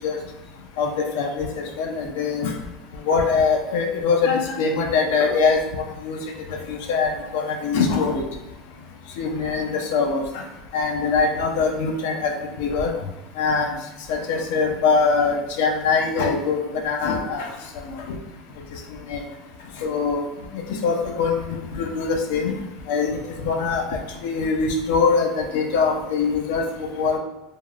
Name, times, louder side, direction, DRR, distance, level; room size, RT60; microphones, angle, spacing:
voice 1, 0.8-1.5 1.8-2.5 3.1-6.2 6.7-8.2 9.2-10.2 10.7-12.9 13.4-13.8 14.1-16.6 16.8-17.5 19.1-19.2 19.8-20.2 20.8-22.5 22.9-23.1 23.4-23.8 24.2-27.2, left 5 dB, 80° left, 2 dB, 0.4 m, -22 dB
3.4 x 2.1 x 2.3 m, 0.98 s
supercardioid pair, 140°, 0 cm